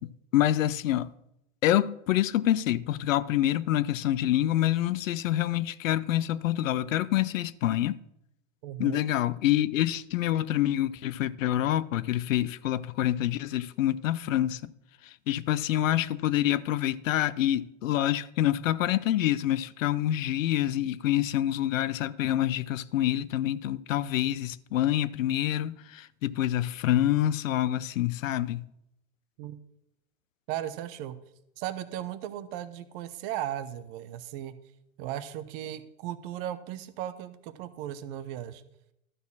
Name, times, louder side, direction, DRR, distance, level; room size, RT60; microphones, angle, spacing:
voice 1, 0.3-1.1 1.6-8.0 8.8-14.7 15.0-28.7, left 13 dB, 70° left, 0.6 m, -27 dB
voice 2, 8.6-9.0 29.4-29.6 30.5-31.2 31.6-34.6 35.0-38.6, right 12 dB, 40° right, 0.8 m, -36 dB
12.0 x 4.2 x 7.1 m
hypercardioid pair, 125°, 40 cm